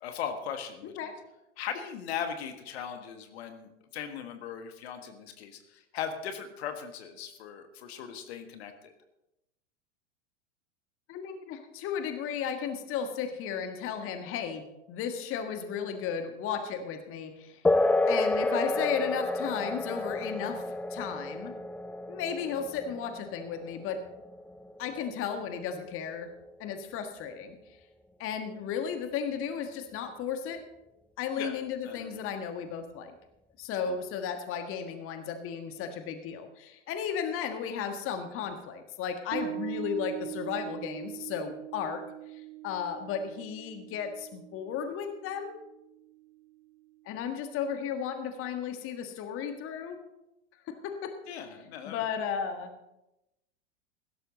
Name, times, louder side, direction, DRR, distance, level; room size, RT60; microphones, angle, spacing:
voice 1, 0.0-1.1 1.6-8.9 31.4-31.6 31.8-32.2 51.3-52.0, left 8 dB, 60° left, 7 dB, 1.6 m, -38 dB
voice 2, 0.8-1.1 11.1-17.6 18.1-21.5 22.1-24.0 24.8-26.3 26.6-27.6 28.2-30.6 31.2-33.1 33.6-42.0 42.3-45.6 47.0-50.0 50.7-51.1 51.8-52.7, left 7 dB, 35° left, 7 dB, 1.5 m, -34 dB
sound 1, 17.6-25.7, left 2 dB, 5° left, 0.4 m, -30 dB
Bass guitar, 39.3-46.5, right 13 dB, 65° right, 1.9 m, -42 dB
16.0 x 12.5 x 4.0 m, 0.91 s
figure-of-eight pair, 90°, 36 cm